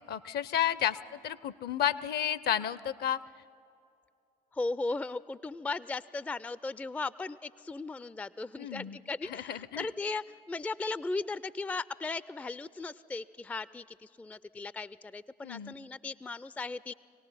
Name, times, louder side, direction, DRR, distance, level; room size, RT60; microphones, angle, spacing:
voice 1, 0.1-3.2 8.6-9.0 9.2-9.9 15.4-15.8, left 10 dB, 50° left, 18 dB, 0.7 m, -32 dB
voice 2, 4.5-16.9, left 3 dB, 5° left, 19 dB, 0.4 m, -37 dB
25.5 x 18.0 x 5.7 m, 2.6 s
hypercardioid pair, 50°, 20 cm